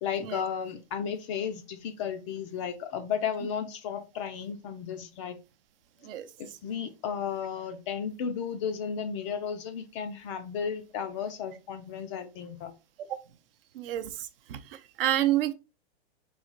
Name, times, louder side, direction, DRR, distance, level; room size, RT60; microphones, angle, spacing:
voice 1, 0.0-5.4 6.4-12.8, left 7 dB, 30° left, 0.4 m, -34 dB
voice 2, 13.7-15.5, right 13 dB, 55° right, 0.7 m, -29 dB
4.8 x 2.8 x 3.9 m
hypercardioid pair, 145°, 33 cm